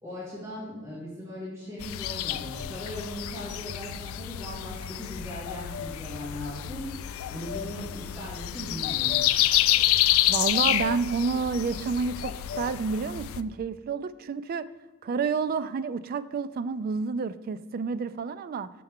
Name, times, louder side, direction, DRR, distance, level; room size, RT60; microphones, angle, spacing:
voice 1, 0.0-7.0 7.3-9.3, equal, 15° right, -10 dB, 2.3 m, -38 dB
sound 1, 1.8-13.4, left 13 dB, 85° left, 0.3 m, -28 dB
voice 2, 10.3-14.7 15.0-18.7, right 5 dB, 45° right, 13 dB, 0.3 m, -29 dB
6.8 x 5.5 x 3.6 m, 1.2 s
head